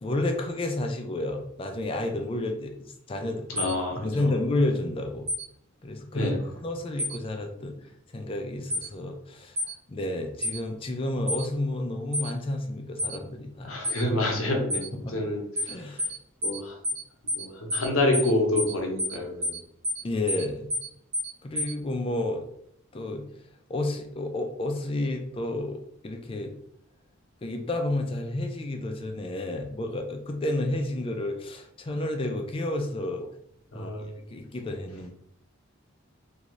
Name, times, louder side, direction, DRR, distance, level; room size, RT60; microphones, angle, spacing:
voice 1, 0.0-3.4 3.9-5.3 5.8-7.7 8.1-9.6 9.9-13.8 15.0-15.3 15.7-16.1 20.0-20.7 21.4-22.5 22.9-23.2 23.7-26.5 27.4-33.2 33.7-34.0 34.3-35.1, left 1 dB, 25° left, 4 dB, 0.4 m, -31 dB
voice 2, 3.5-4.3 6.1-6.4 13.6-15.4 16.4-16.8 17.4-19.6 33.7-34.2, left 1 dB, 80° left, 2 dB, 0.8 m, -27 dB
sound 1, 3.6-3.7 5.3-5.4 7.0-7.2 8.7-8.9 9.6-9.7 10.4-10.6 11.3-11.4 12.1-12.3 13.0-13.2 13.8-14.0 14.7-14.9 15.6-15.7 16.0-16.2 16.4-16.6 16.8-17.0 17.3-17.4 17.7-17.9 18.1-18.3 18.6-18.7 19.0-19.2 19.4-19.6 19.8-20.0 20.3-20.4 20.7-20.9 21.1-21.3 21.6-21.7, equal, 85° right, 1.4 m, -29 dB
2.7 x 2.5 x 3.0 m, 0.74 s
head